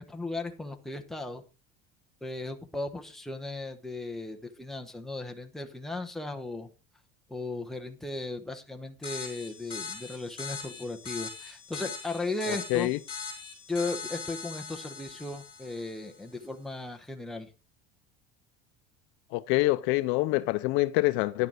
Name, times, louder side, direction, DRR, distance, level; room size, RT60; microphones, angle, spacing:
voice 1, 0.0-1.4 2.2-6.7 7.3-12.9 13.7-17.5, left 2 dB, ahead, 1.1 m, -36 dB
sound 1, 9.0-16.2, left 5 dB, 25° left, 4.2 m, -41 dB
voice 2, 12.5-13.0 19.3-21.5, left 20 dB, 70° left, 0.6 m, -26 dB
10.5 x 6.8 x 5.0 m
cardioid pair, 155°, 21 cm